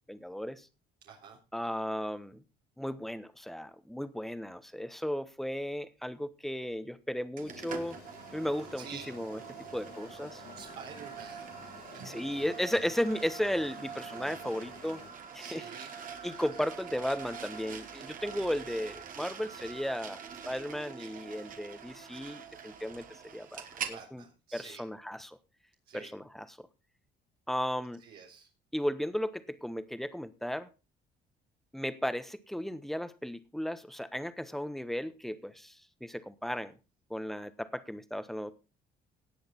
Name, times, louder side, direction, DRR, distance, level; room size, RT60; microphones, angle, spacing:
voice 1, 0.1-0.7 1.5-2.4 2.8-8.0 8.3-9.4 9.7-10.4 12.0-15.0 15.3-15.6 16.2-20.2 20.5-23.0 23.3-24.2 24.5-25.4 25.9-26.7 27.5-28.0 28.7-30.7 31.7-36.7 37.1-38.6, equal, ahead, 12 dB, 1.2 m, -35 dB
voice 2, 1.0-1.4 8.8-9.1 10.5-12.0 15.4-15.9 23.8-24.8 25.9-26.1 28.0-28.5 36.5-36.6, right 7 dB, 70° right, -1 dB, 3.6 m, -48 dB
sound 1, 7.4-15.1, left 10 dB, 70° left, 1.7 m, -53 dB
sound 2, 7.4-24.0, right 7 dB, 55° right, 2.1 m, -45 dB
18.0 x 6.5 x 4.4 m, 0.30 s
cardioid pair, 110°, 17 cm